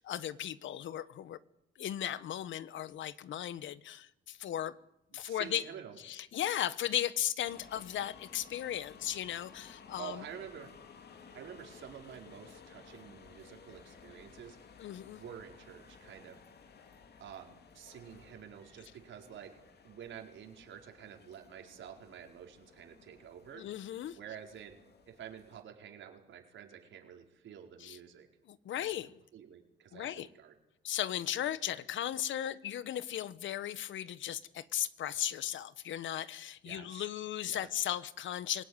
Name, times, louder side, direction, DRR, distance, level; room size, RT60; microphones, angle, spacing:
voice 1, 0.0-1.4 1.8-4.8 5.1-5.6 6.0-10.2 14.8-15.2 23.6-24.2 27.8-28.0 28.5-29.2 29.9-30.3 30.8-38.6, left 11 dB, 70° left, 1.2 m, -36 dB
voice 2, 5.2-6.0 10.0-10.7 11.3-14.6 15.2-16.4 17.2-23.7 24.1-24.8 25.1-28.3 28.7-28.9 29.3-30.5 31.7-31.8 36.6-37.1 37.5-37.7, right 9 dB, 70° right, 4.8 m, -49 dB
sound 1, 7.4-25.6, left 6 dB, 55° left, 2.9 m, -57 dB
26.0 x 17.5 x 9.8 m
cardioid pair, 90°, 20 cm